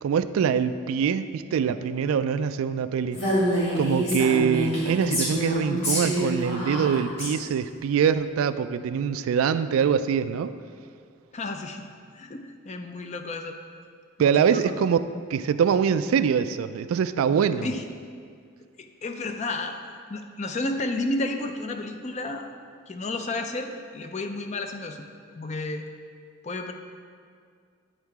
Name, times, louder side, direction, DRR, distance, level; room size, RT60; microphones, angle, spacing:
voice 1, 0.0-3.2 3.8-10.5 14.2-15.0 15.3-17.7, right 7 dB, 85° right, 13 dB, 0.3 m, -24 dB
Female speech woman speaking, 3.1-7.3, equal, 65° left, 2.0 m, -26 dB
voice 2, 11.3-11.9 12.1-13.6 14.2-14.7 17.6-17.8 18.8-19.8 20.1-22.5 22.9-25.0 25.3-25.8 26.4-26.7, left 2 dB, 35° left, 6 dB, 0.4 m, -32 dB
8.8 x 4.5 x 4.7 m, 2.1 s
head